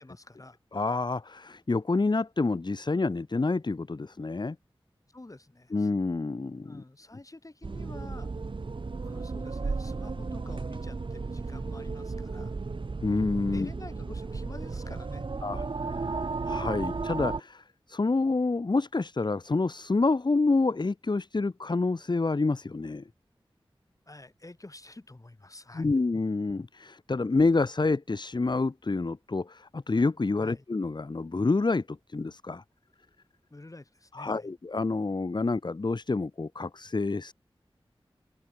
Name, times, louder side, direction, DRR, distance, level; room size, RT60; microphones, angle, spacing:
voice 1, 0.0-0.6 5.1-5.9 6.6-8.3 9.0-12.5 13.5-15.3 24.1-25.9 30.4-30.6 33.5-34.5, left 2 dB, 35° left, 5.3 m, -48 dB
voice 2, 0.7-4.6 5.7-6.8 13.0-13.7 15.4-15.6 15.9-23.0 25.7-32.6 34.1-37.3, left 3 dB, 50° left, 1.3 m, -28 dB
sound 1, 7.6-17.4, right 4 dB, 60° right, 1.1 m, -34 dB
open air
wide cardioid pair, 60°, 10 cm